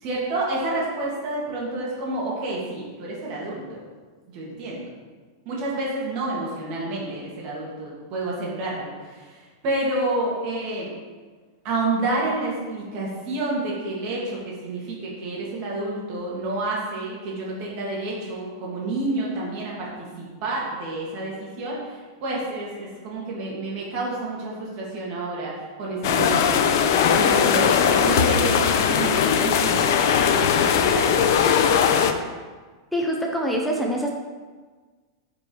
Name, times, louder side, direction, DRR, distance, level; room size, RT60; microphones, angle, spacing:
voice 1, 0.0-3.8 4.3-4.8 5.5-10.9 11.6-19.9 20.2-25.5 25.8-31.1 31.4-31.8, right 2 dB, 35° right, -4 dB, 2.3 m, -29 dB
sound 1, 26.0-32.1, left 7 dB, 55° left, 0.7 m, -19 dB
voice 2, 32.9-34.1, equal, ahead, -1 dB, 0.7 m, -24 dB
10.0 x 5.3 x 4.7 m, 1.4 s
supercardioid pair, 170°, 2 cm